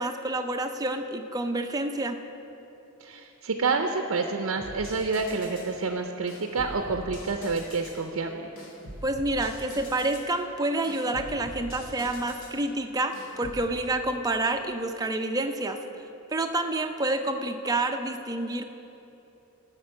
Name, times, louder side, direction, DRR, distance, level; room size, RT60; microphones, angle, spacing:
voice 1, 0.0-2.2 9.0-15.8 16.3-18.6, right 2 dB, 15° right, 5 dB, 0.5 m, -28 dB
voice 2, 3.0-8.5, right 4 dB, 75° right, 5 dB, 0.6 m, -28 dB
sound 1, 4.6-5.7 6.3-8.0 8.6-10.3 10.8-12.6 13.1-13.6, equal, 75° left, 1.9 m, -43 dB
12.5 x 5.9 x 6.5 m, 3.0 s
head